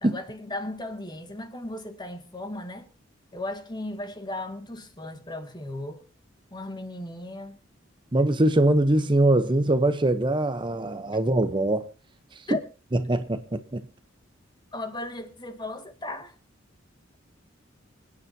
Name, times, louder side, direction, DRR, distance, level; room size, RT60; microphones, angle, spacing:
voice 1, 0.0-2.9 3.3-6.0 6.5-7.6 12.5-12.6 14.7-16.4, left 2 dB, 20° left, 2.2 m, -36 dB
voice 2, 8.1-11.9 13.1-13.8, right 1 dB, 25° right, 0.8 m, -22 dB
27.0 x 9.6 x 2.8 m
head